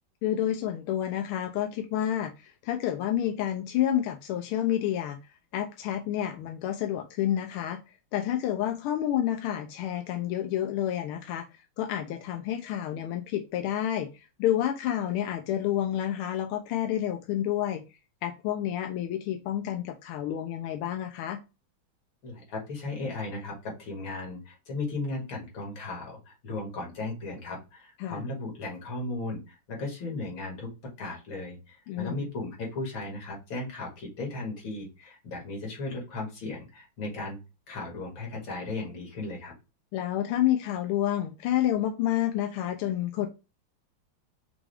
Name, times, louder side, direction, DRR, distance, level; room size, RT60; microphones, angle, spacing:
voice 1, 0.2-5.2 5.5-7.8 8.1-17.9 18.2-21.4 28.0-28.2 31.9-32.3 39.9-43.3, left 11 dB, 90° left, 5 dB, 1.5 m, -29 dB
voice 2, 22.2-37.4 37.7-39.5, left 2 dB, 65° left, -1 dB, 2.5 m, -36 dB
5.9 x 2.4 x 3.3 m, 0.28 s
omnidirectional pair, 2.4 m